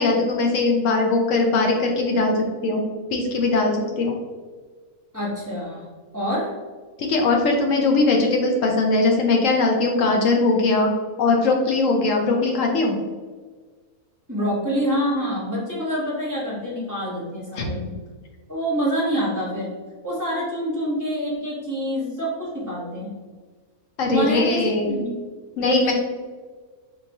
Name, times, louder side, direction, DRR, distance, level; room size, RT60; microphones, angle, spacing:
voice 1, 0.0-2.8 3.1-4.2 7.0-10.9 11.2-13.0 17.6-17.7 24.0-25.0 25.6-25.9, left 3 dB, 70° left, 2 dB, 0.9 m, -20 dB
voice 2, 5.1-5.9 6.1-6.6 14.3-17.9 18.5-19.7 20.0-23.2 24.1-25.1 25.6-25.9, equal, 15° right, -6 dB, 0.8 m, -26 dB
4.5 x 2.9 x 2.6 m, 1.4 s
omnidirectional pair, 1.5 m